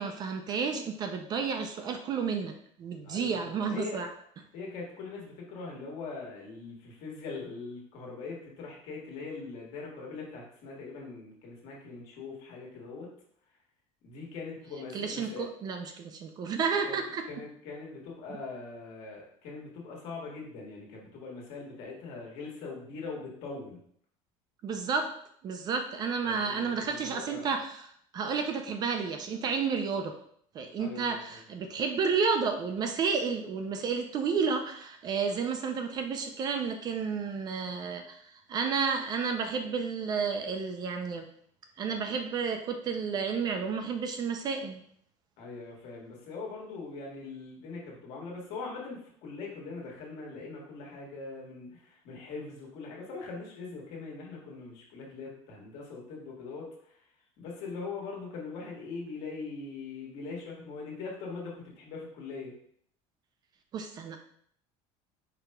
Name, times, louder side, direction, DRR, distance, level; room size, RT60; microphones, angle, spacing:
voice 1, 0.0-4.1 14.9-17.2 24.6-25.1 25.4-27.9 28.1-30.1 30.5-41.3 41.8-44.8 63.7-64.2, right 5 dB, 30° right, 6 dB, 0.4 m, -31 dB
voice 2, 3.0-4.0 4.5-13.1 14.0-15.5 16.8-17.0 17.3-23.8 26.2-27.5 30.8-31.4 45.4-57.0 57.4-62.5, left 4 dB, 55° left, -2 dB, 1.5 m, -41 dB
4.9 x 4.6 x 2.2 m, 0.64 s
cardioid pair, 165°, 13 cm